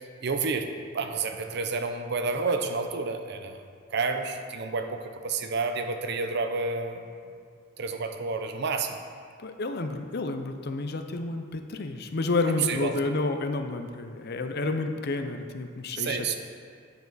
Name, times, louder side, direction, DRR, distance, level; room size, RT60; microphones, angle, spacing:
voice 1, 0.2-0.7 0.9-3.6 3.9-7.1 7.8-9.0 12.6-12.9 16.0-16.4, right 4 dB, 60° right, 6 dB, 0.6 m, -29 dB
voice 2, 9.4-16.4, left 3 dB, 55° left, 7 dB, 0.6 m, -30 dB
9.0 x 7.0 x 4.0 m, 2.1 s
head